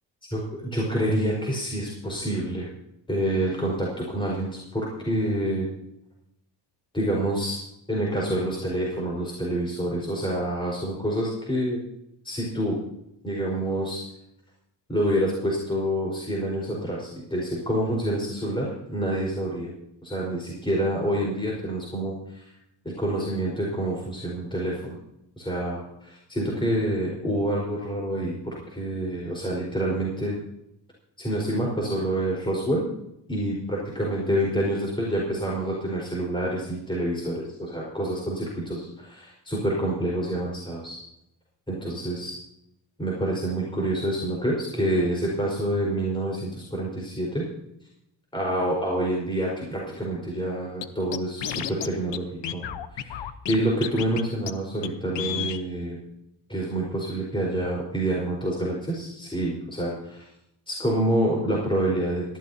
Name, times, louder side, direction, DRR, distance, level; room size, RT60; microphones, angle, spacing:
voice 1, 0.3-2.7 3.1-5.7 6.9-7.6 7.9-11.8 12.2-12.8 13.2-14.0 14.9-19.7 20.0-22.5 22.8-25.0 25.4-30.4 31.2-32.8 33.3-41.0 41.7-42.3 43.0-47.4 48.3-52.6 52.9-56.0 56.5-60.3 60.7-62.4, right 1 dB, 10° left, -3 dB, 4.5 m, -27 dB
Scratching (performance technique), 50.8-50.9 51.1-51.9 52.1-52.2 52.4-53.6 53.8-54.2 54.5-54.6 54.8-54.9 55.1-55.6, left 10 dB, 70° left, 1.0 m, -31 dB
18.0 x 14.0 x 2.8 m, 0.80 s
cardioid pair, 110°, 44 cm